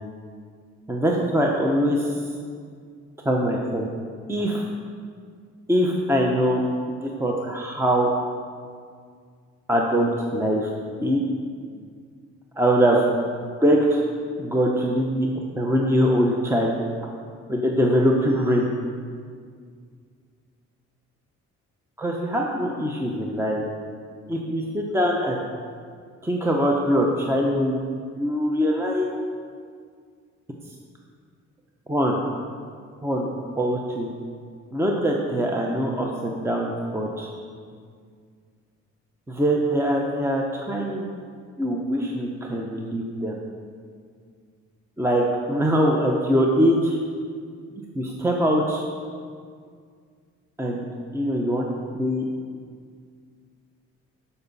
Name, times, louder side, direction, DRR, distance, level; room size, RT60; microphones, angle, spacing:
voice 1, 0.9-2.3 3.2-3.9 4.3-4.6 5.7-6.6 7.0-8.1 9.7-10.7 11.0-11.2 12.6-13.1 13.6-14.0 14.4-15.3 15.6-16.8 17.5-18.7 22.0-23.6 24.3-25.4 26.2-27.8 28.2-29.1 31.9-32.2 33.0-33.3 33.5-34.1 34.7-37.3 39.3-41.0 41.6-43.3 45.0-47.0 47.9-48.8 50.6-50.9 51.1-51.7 51.9-52.2, equal, 10° right, -1 dB, 0.8 m, -22 dB
12.5 x 5.6 x 4.1 m, 2.1 s
cardioid pair, 90°, 30 cm